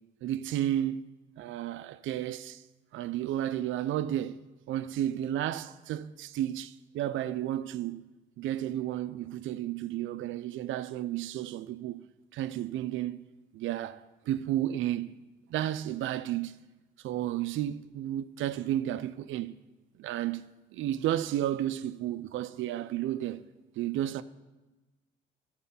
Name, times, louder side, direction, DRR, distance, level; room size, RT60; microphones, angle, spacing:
voice 1, 0.2-1.1 1.4-2.6 2.9-4.4 4.7-8.0 8.4-12.0 12.3-13.2 13.5-15.2 15.5-16.5 17.0-19.5 20.0-20.4 20.7-23.4 23.8-24.2, right 12 dB, 75° right, 0.4 m, -32 dB
13.0 x 4.4 x 5.4 m
cardioid pair, 90°, 20 cm